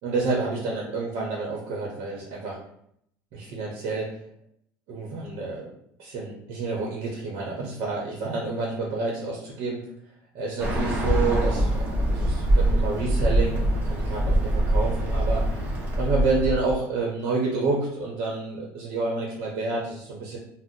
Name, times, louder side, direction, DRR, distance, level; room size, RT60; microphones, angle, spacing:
voice 1, 0.0-2.6 3.3-4.1 4.9-5.7 6.0-9.8 10.3-15.4 16.0-20.4, right 3 dB, 65° right, -3 dB, 0.8 m, -29 dB
Bird, 10.6-16.7, right 1 dB, 25° right, 0.8 m, -23 dB
2.6 x 2.0 x 3.8 m, 0.71 s
cardioid pair, 150°, 7 cm